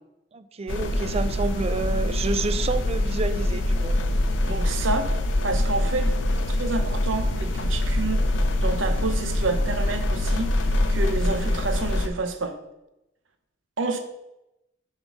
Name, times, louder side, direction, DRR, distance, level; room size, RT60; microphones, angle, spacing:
voice 1, 0.3-4.0, right 3 dB, 35° right, 12 dB, 0.4 m, -29 dB
sound 1, 0.7-12.1, left 1 dB, 75° left, 0.6 m, -24 dB
voice 2, 4.5-5.1 5.4-6.1 6.5-8.2 8.6-12.6 13.8-14.0, right 3 dB, 85° right, 7 dB, 0.8 m, -29 dB
7.2 x 3.7 x 6.2 m, 0.91 s
head